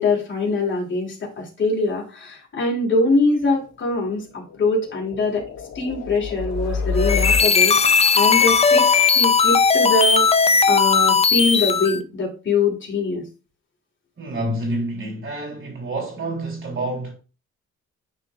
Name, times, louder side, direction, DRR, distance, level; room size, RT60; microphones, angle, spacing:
voice 1, 0.0-5.4 5.7-7.7 8.1-10.2 10.7-13.2, left 3 dB, 40° left, 2.9 m, -23 dB
sound 1, 3.4-10.2, left 4 dB, 55° left, 3.0 m, -30 dB
sound 2, 6.9-12.0, left 5 dB, 20° left, 0.5 m, -17 dB
voice 2, 14.2-17.1, right 1 dB, 45° right, 3.3 m, -28 dB
9.5 x 4.3 x 2.4 m
cardioid pair, 90°, 30 cm